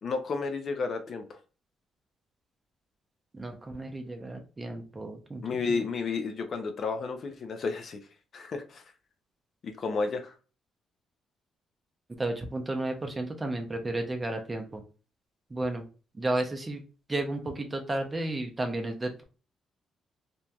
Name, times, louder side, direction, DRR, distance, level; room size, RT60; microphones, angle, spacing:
voice 1, 0.0-1.4 5.4-8.0 8.3-8.8 9.6-10.3, left 4 dB, 55° left, 6 dB, 0.5 m, -32 dB
voice 2, 3.3-5.8 12.2-14.8 15.5-15.9 16.1-16.8 17.1-19.2, right 2 dB, 20° right, 4 dB, 0.6 m, -33 dB
3.0 x 2.6 x 2.2 m, 0.34 s
cardioid pair, 90°, 0 cm